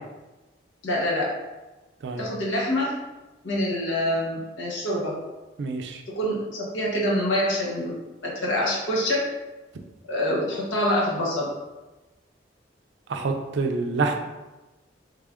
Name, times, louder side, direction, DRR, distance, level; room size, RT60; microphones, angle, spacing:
voice 1, 0.8-1.3 2.2-2.9 3.4-5.1 6.2-7.9 8.2-9.3 10.1-11.5, left 1 dB, 85° left, -4 dB, 1.0 m, -25 dB
voice 2, 5.6-6.0 13.1-14.2, right 3 dB, 70° right, 5 dB, 0.4 m, -27 dB
3.3 x 2.4 x 3.4 m, 1.1 s
head